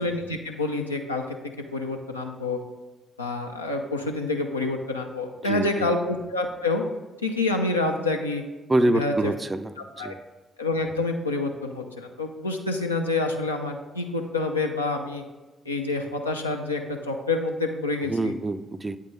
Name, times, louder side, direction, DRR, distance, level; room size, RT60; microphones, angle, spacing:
voice 1, 0.0-1.4 1.7-2.6 3.2-6.8 7.2-8.4 8.8-9.1 10.0-10.1 10.6-15.2 15.7-18.3, left 3 dB, 90° left, 2 dB, 0.4 m, -27 dB
voice 2, 5.4-5.9 8.7-10.2 18.0-19.0, right 1 dB, 25° right, 12 dB, 0.3 m, -26 dB
8.5 x 3.7 x 3.6 m, 1.2 s
figure-of-eight pair, 40°, 0 cm